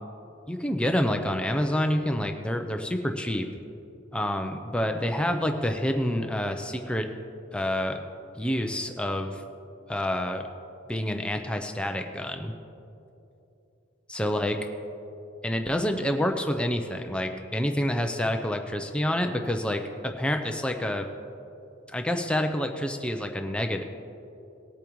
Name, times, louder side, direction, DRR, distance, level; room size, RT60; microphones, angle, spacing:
voice 1, 0.5-3.5 4.1-7.1 7.5-8.0 8.4-9.4 9.9-10.5 10.9-12.5 14.1-14.7 15.4-21.1 21.9-23.8, left 1 dB, 5° left, 4 dB, 0.5 m, -28 dB
20.0 x 8.6 x 3.1 m, 2.8 s
head